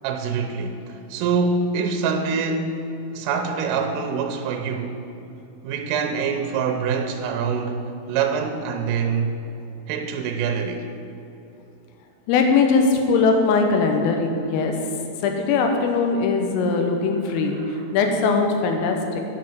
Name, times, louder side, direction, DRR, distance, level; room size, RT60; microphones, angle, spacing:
voice 1, 0.0-5.0 5.6-9.3 9.9-10.9 17.4-17.9, right 5 dB, 85° right, 5 dB, 3.3 m, -25 dB
voice 2, 12.3-14.7 15.2-17.6 17.9-19.2, left 4 dB, 90° left, 4 dB, 3.7 m, -20 dB
9.9 x 6.8 x 7.7 m, 2.8 s
omnidirectional pair, 5.7 m